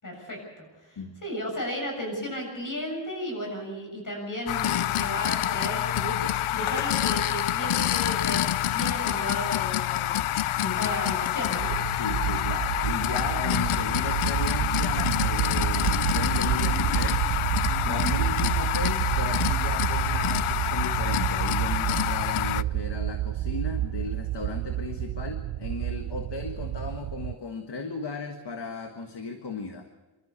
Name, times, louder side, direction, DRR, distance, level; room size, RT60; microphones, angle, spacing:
voice 1, 0.0-10.3 10.6-11.8 17.8-18.2, equal, 40° left, 1 dB, 7.3 m, -34 dB
sound 1, 4.5-22.6, left 13 dB, 85° left, 0.6 m, -27 dB
sound 2, 11.6-27.3, right 14 dB, 90° right, 0.6 m, -29 dB
voice 2, 12.0-17.2 17.8-29.9, left 4 dB, 55° left, 5 dB, 1.6 m, -36 dB
25.5 x 13.0 x 8.3 m, 1.2 s
wide cardioid pair, 130°, 48 cm